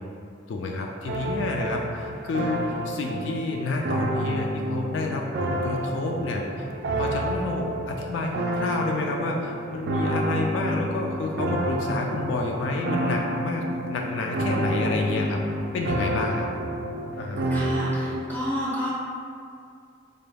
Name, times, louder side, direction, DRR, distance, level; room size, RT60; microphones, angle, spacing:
voice 1, 0.5-6.7 6.9-15.4 15.7-16.5 17.2-17.4, left 2 dB, 75° left, 1 dB, 0.3 m, -29 dB
sound 1, 1.1-18.2, right 1 dB, 60° right, 0.3 m, -29 dB
voice 2, 17.5-18.9, equal, 10° left, -8 dB, 0.9 m, -30 dB
3.8 x 3.4 x 2.2 m, 2.3 s
head